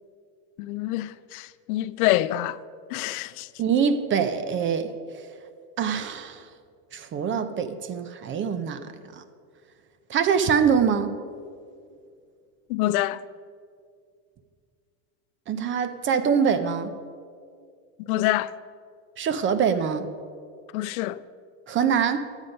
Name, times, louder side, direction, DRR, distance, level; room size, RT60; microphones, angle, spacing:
voice 1, 0.6-2.6 2.9-3.5 12.7-13.2 18.1-18.5 20.7-21.2, left 16 dB, 90° left, 0.5 m, -26 dB
voice 2, 3.6-5.3 5.8-6.4 6.9-9.2 10.1-11.2 15.5-16.9 19.2-20.1 21.7-22.2, right 7 dB, 30° right, 0.6 m, -24 dB
11.5 x 8.1 x 5.4 m
supercardioid pair, 135°, 43 cm